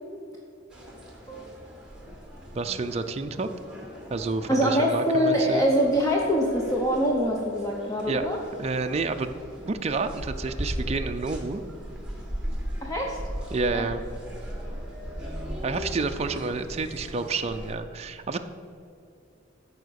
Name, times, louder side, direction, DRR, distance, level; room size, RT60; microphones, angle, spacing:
sound 1, 0.7-17.8, equal, 5° right, 1.8 m, -38 dB
voice 1, 2.5-3.5 4.1-5.6 8.1-8.3 8.6-9.3 9.7-11.6 13.5-14.0 15.6-18.4, right 3 dB, 30° right, 6 dB, 0.4 m, -29 dB
voice 2, 4.5-8.4 12.8-13.2 13.7-13.9, equal, 15° left, -2 dB, 0.9 m, -24 dB
13.5 x 5.0 x 6.4 m, 2.6 s
head